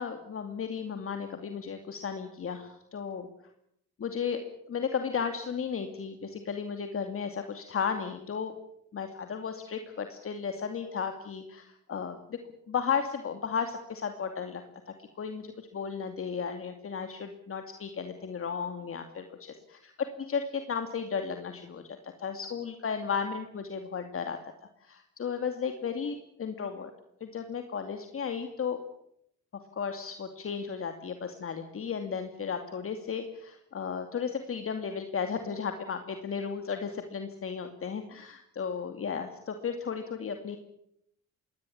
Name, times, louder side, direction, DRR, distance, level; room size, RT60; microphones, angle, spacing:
voice 1, 0.0-3.3 4.0-8.6 8.9-12.4 12.7-19.9 20.3-24.4 24.8-26.9 27.2-28.8 29.7-40.6, left 6 dB, 45° left, 6 dB, 2.5 m, -34 dB
23.0 x 18.5 x 8.7 m, 0.75 s
cardioid pair, 90°, 30 cm